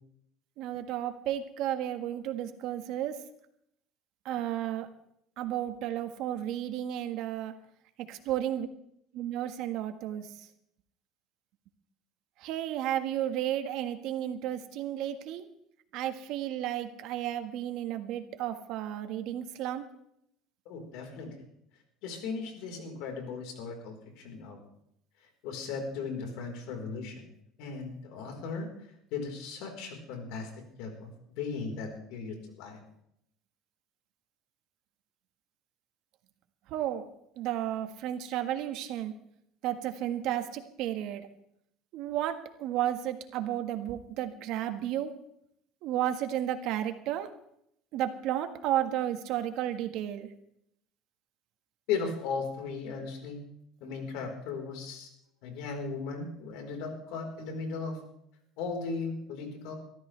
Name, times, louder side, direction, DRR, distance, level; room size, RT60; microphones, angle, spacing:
voice 1, 0.6-3.1 4.2-4.9 5.4-7.5 8.1-8.7 9.1-10.3 12.4-15.4 15.9-19.8 36.7-37.1 37.4-39.1 39.6-41.3 41.9-45.1 45.8-47.3 47.9-50.3, right 11 dB, 65° right, 8 dB, 1.6 m, -33 dB
voice 2, 20.7-21.3 22.0-24.6 25.4-27.3 27.6-28.7 29.1-30.5 30.8-32.8 51.9-53.4 53.8-55.1 55.4-58.0 58.6-59.7, left 5 dB, 75° left, 3 dB, 4.4 m, -37 dB
22.5 x 14.0 x 3.4 m, 0.74 s
cardioid pair, 125°, 0 cm